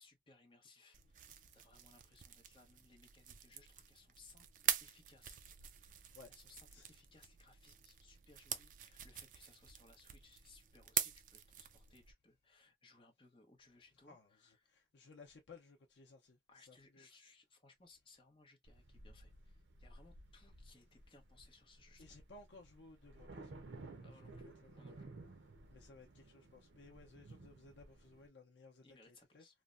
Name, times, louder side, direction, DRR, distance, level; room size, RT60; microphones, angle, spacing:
voice 1, 0.0-4.5 4.8-14.8 16.5-22.2 24.0-25.2 28.8-29.5, left 3 dB, 30° left, 0.8 m, -65 dB
sound 1, 0.9-12.1, right 10 dB, 45° right, 0.4 m, -45 dB
voice 2, 14.1-17.1 22.0-25.1 25.7-29.4, left 3 dB, 85° left, 0.6 m, -60 dB
sound 2, 18.7-28.3, right 2 dB, 80° right, 0.6 m, -56 dB
3.1 x 2.1 x 2.4 m
head